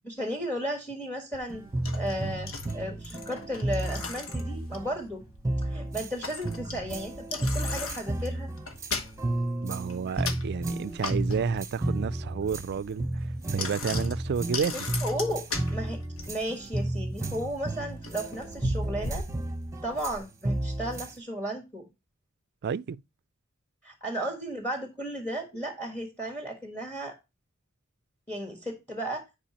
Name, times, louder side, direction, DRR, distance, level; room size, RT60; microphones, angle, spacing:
voice 1, 0.0-1.6 1.9-5.2 5.6-8.5 14.7-15.4 15.7-16.0 16.3-19.3 19.8-21.9 23.8-27.1 28.3-29.2, equal, 10° left, 1.4 m, -34 dB
Bicycle, 1.3-20.2, left 3 dB, 75° left, 1.2 m, -39 dB
sound 1, 1.5-6.1 6.4-21.1, right 1 dB, 15° right, 0.9 m, -33 dB
voice 2, 9.6-14.7 22.6-23.0, right 6 dB, 50° right, 0.3 m, -31 dB
10.0 x 4.9 x 2.9 m
head